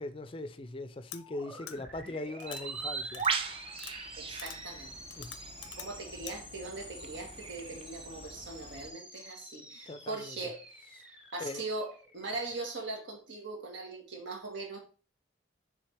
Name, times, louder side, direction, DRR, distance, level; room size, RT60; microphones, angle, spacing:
voice 1, 0.0-3.5 5.2-5.4 9.9-10.3 11.4-11.6, left 2 dB, 30° left, 0.4 m, -40 dB
sound 1, 1.1-1.2 1.7-1.8 2.4-2.6 3.1-3.3 3.8-3.9 4.4-4.6 5.1-5.9 6.3-6.4, left 12 dB, 80° left, 0.6 m, -44 dB
sound 2, 1.1-12.8, equal, 5° right, 0.8 m, -49 dB
Bird, 2.5-8.9, right 5 dB, 30° right, 0.4 m, -39 dB
voice 2, 4.2-4.9 5.8-10.6 11.3-14.8, right 3 dB, 80° right, 1.9 m, -40 dB
6.4 x 3.7 x 4.6 m
head